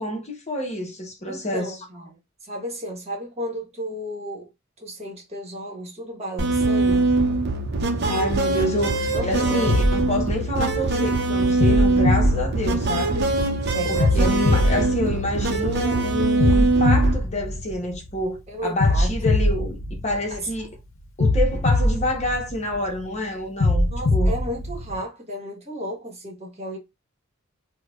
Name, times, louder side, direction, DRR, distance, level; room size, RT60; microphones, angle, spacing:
voice 1, 0.0-1.7 8.0-13.2 13.9-20.7 21.2-24.3, left 1 dB, 35° left, 0.8 m, -28 dB
voice 2, 1.3-4.5 4.8-7.1 9.1-9.8 12.9-13.4 13.7-14.4 14.7-15.2 18.5-19.1 20.3-20.5 23.9-26.8, equal, 30° right, 1.2 m, -33 dB
sound 1, 6.4-17.1, right 2 dB, 55° right, 0.6 m, -22 dB
sound 2, 9.7-11.0 11.6-13.3 14.0-15.8 16.4-18.2 18.8-20.6 21.2-22.9 23.6-25.0, left 1 dB, 75° left, 0.7 m, -22 dB
4.5 x 2.2 x 2.3 m
head